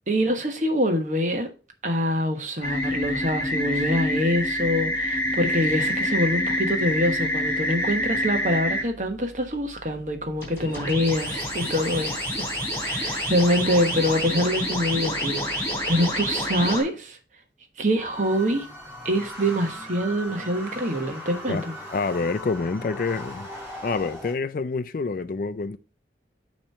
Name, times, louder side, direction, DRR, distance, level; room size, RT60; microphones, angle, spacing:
voice 1, 0.1-1.5 1.8-12.5 12.8-17.2 17.8-18.7 19.0-21.7, equal, 45° right, 1.2 m, -25 dB
sound 1, 2.6-8.8 10.4-16.8, left 1 dB, 15° left, 3.3 m, -27 dB
sound 2, 18.0-24.3, left 1 dB, 10° right, 4.4 m, -39 dB
voice 2, 21.9-23.5 23.8-25.8, left 4 dB, 50° left, 0.4 m, -27 dB
8.7 x 3.2 x 5.5 m
head